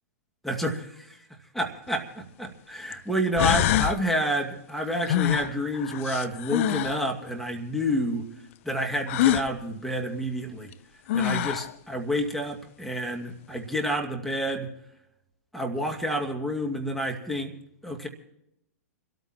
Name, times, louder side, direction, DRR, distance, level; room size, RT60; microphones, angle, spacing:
voice 1, 0.4-1.2 1.5-8.3 8.7-10.7 11.1-14.7 15.5-17.5 17.8-18.1, equal, ahead, 2 dB, 2.0 m, -29 dB
sound 1, 1.9-2.0 2.9-3.0 3.4-4.0 5.1-7.0 9.1-9.5 10.7-10.8 11.1-11.7, left 11 dB, 55° left, 0.6 m, -25 dB
28.0 x 13.5 x 2.9 m, 0.79 s
hypercardioid pair, 115°, 9 cm